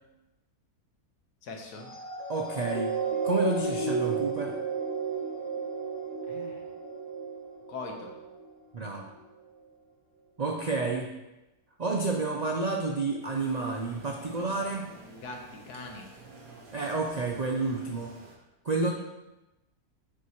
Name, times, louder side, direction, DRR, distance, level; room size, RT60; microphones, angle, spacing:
voice 1, 1.4-1.9 6.2-6.7 7.7-8.1 15.2-16.1, left 3 dB, 90° left, 2 dB, 1.6 m, -41 dB
sound 1, 1.8-8.5 9.1-9.2, right 4 dB, 40° left, 0.9 m, -33 dB
voice 2, 2.3-2.9 3.2-4.6 8.7-9.1 10.4-11.1 11.8-14.9 16.7-18.1 18.6-18.9, right 3 dB, 85° right, 1 dB, 0.3 m, -30 dB
sound 2, 13.2-18.4, right 3 dB, 65° right, 1.6 m, -50 dB
7.6 x 6.2 x 3.0 m, 0.98 s
omnidirectional pair, 1.6 m